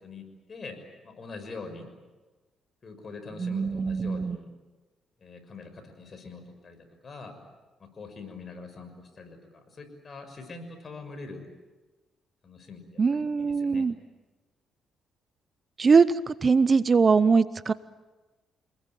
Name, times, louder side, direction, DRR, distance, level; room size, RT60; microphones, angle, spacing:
voice 1, 0.0-1.9 2.8-4.5 5.2-6.8 7.0-7.3 7.8-11.5 12.4-13.9, left 3 dB, 40° left, 7 dB, 6.1 m, -43 dB
voice 2, 3.4-4.4 13.0-14.0 15.8-17.7, right 5 dB, 35° right, 16 dB, 0.8 m, -22 dB
27.5 x 20.5 x 9.2 m, 1.2 s
cardioid pair, 85°, 0 cm